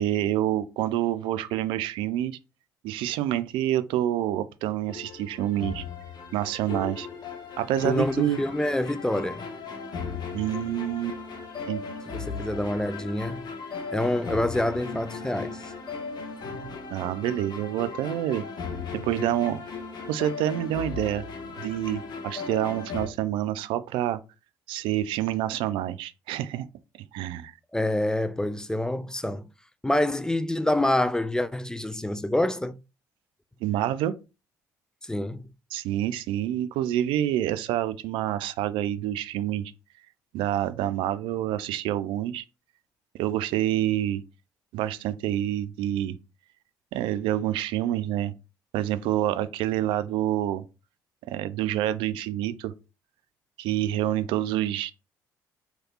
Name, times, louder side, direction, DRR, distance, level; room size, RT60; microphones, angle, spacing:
voice 1, 0.0-2.4 2.8-5.8 6.3-7.1 7.6-8.4 10.3-11.2 11.7-11.8 16.9-18.4 18.9-19.6 20.1-21.2 21.6-24.2 24.7-26.7 27.1-27.5 33.6-34.1 35.7-39.7 40.3-42.4 43.2-44.2 44.7-46.2 46.9-48.3 48.7-50.6 51.3-52.7 53.6-54.9, right 12 dB, 70° right, 0.3 m, -27 dB
sound 1, 4.9-23.1, left 4 dB, 50° left, 0.9 m, -37 dB
voice 2, 7.8-9.5 12.1-13.5 13.9-15.7 27.7-29.4 29.8-32.8 35.0-35.5, left 1 dB, 5° left, 0.3 m, -27 dB
3.2 x 2.9 x 2.4 m
hypercardioid pair, 55°, 9 cm